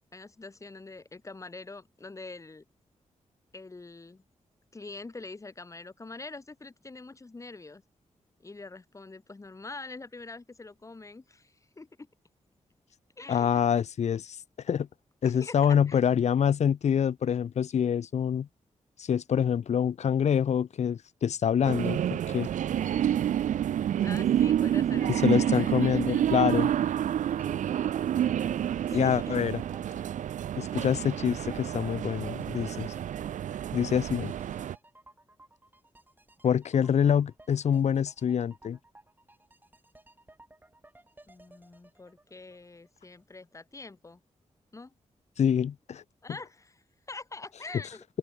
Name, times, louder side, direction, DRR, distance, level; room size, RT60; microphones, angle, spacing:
voice 1, 0.1-2.6 3.5-4.2 4.7-7.8 8.4-12.1 13.2-13.6 15.2-16.0 24.0-25.7 26.1-26.3 28.1-29.3 41.3-44.2 44.7-44.9 46.2-48.0, left 3 dB, 25° left, 1.3 m, -45 dB
voice 2, 13.3-14.4 14.7-14.9 15.2-18.5 19.0-22.5 25.1-26.7 28.9-29.6 30.6-32.9 33.7-34.3 36.4-38.8 45.4-46.0, left 8 dB, 65° left, 0.6 m, -26 dB
sound 1, 21.6-34.8, right 10 dB, 85° right, 0.5 m, -29 dB
sound 2, 27.3-43.2 43.5-43.6, right 2 dB, 15° right, 3.9 m, -58 dB
open air
wide cardioid pair, 100°, 13 cm